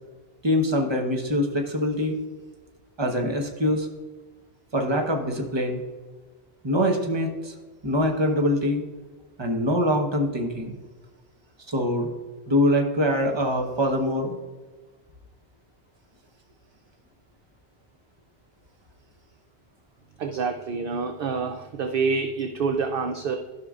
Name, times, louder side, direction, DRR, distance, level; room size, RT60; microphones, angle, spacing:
voice 1, 0.4-2.2 3.0-3.9 4.7-5.8 6.6-7.5 7.8-8.8 9.4-10.7 11.7-12.1 12.5-14.4, left 1 dB, 25° right, 2 dB, 1.0 m, -24 dB
voice 2, 20.2-23.4, right 5 dB, 60° right, 6 dB, 0.7 m, -27 dB
12.5 x 5.8 x 2.4 m, 1.3 s
omnidirectional pair, 1.2 m